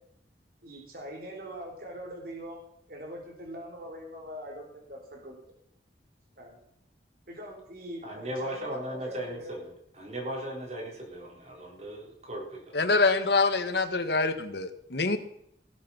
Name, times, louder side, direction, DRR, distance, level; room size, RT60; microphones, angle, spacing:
voice 1, 0.6-2.6 2.9-5.4 6.4-6.6 7.3-9.5 13.9-14.2, equal, 55° right, 1 dB, 3.7 m, -42 dB
voice 2, 8.0-12.6, right 1 dB, 40° right, -1 dB, 4.1 m, -37 dB
voice 3, 12.7-15.2, left 3 dB, 65° left, 9 dB, 1.5 m, -25 dB
19.0 x 8.1 x 5.8 m, 0.73 s
head